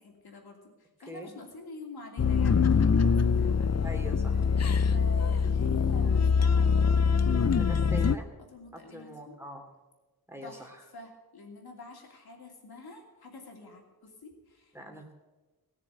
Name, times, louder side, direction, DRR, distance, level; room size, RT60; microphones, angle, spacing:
voice 1, 0.0-3.9 4.9-7.8 8.5-9.4 10.4-14.8, left 3 dB, 90° left, 1 dB, 2.9 m, -47 dB
sound 1, 2.2-8.2, left 5 dB, 45° left, 0.6 m, -24 dB
voice 2, 3.8-4.5 7.6-8.3 8.7-9.6 10.3-10.8 14.7-15.1, right 1 dB, 5° right, 3 dB, 2.7 m, -43 dB
18.0 x 6.7 x 8.9 m, 1.2 s
wide cardioid pair, 85°, 37 cm